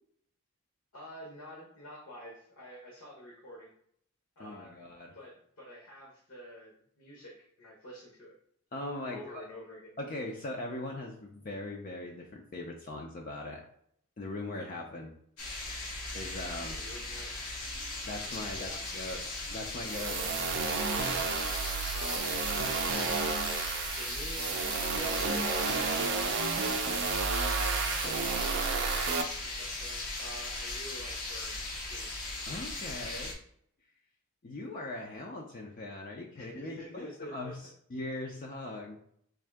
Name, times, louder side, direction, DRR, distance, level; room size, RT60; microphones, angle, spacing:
voice 1, 0.9-3.7 4.4-4.9 5.1-8.4 9.1-10.0 14.9-15.0 16.7-17.5 18.5-18.8 21.9-22.5 23.9-25.9 26.6-27.3 28.0-32.1 36.3-37.7, equal, 65° left, -3 dB, 0.9 m, -48 dB
voice 2, 4.4-5.1 8.7-9.5 10.0-13.6 14.2-15.1 16.1-16.8 18.0-19.2 19.5-20.2 32.5-33.4 34.4-39.0, left 2 dB, 40° left, 0 dB, 0.4 m, -40 dB
sound 1, 15.4-33.3, left 2 dB, 90° left, 0.9 m, -38 dB
sound 2, 19.8-29.2, right 5 dB, 50° right, 0.4 m, -31 dB
3.6 x 2.6 x 3.3 m, 0.67 s
head